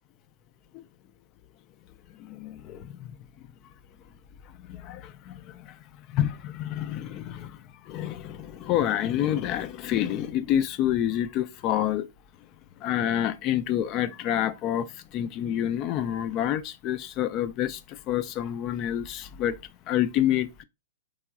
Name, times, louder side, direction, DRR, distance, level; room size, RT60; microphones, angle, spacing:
voice 1, 2.2-3.1 4.6-5.8 6.1-7.6 7.9-12.1 12.8-19.6 19.9-20.6, left 11 dB, 35° left, 0.3 m, -28 dB
3.0 x 2.6 x 2.3 m
hypercardioid pair, 130°, 0 cm